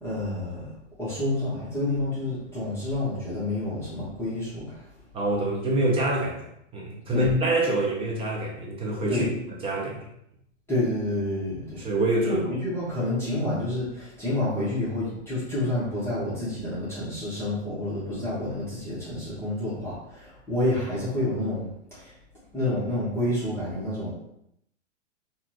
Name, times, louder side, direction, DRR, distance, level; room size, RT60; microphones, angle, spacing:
voice 1, 0.0-4.8 7.1-7.3 9.1-9.3 10.7-11.8 12.2-22.1 22.5-24.1, left 1 dB, 5° left, -11 dB, 1.3 m, -29 dB
voice 2, 5.1-9.3 9.6-10.1 11.8-12.4, right 1 dB, 15° right, -2 dB, 0.7 m, -26 dB
3.8 x 2.5 x 3.0 m, 0.76 s
hypercardioid pair, 135°, 37 cm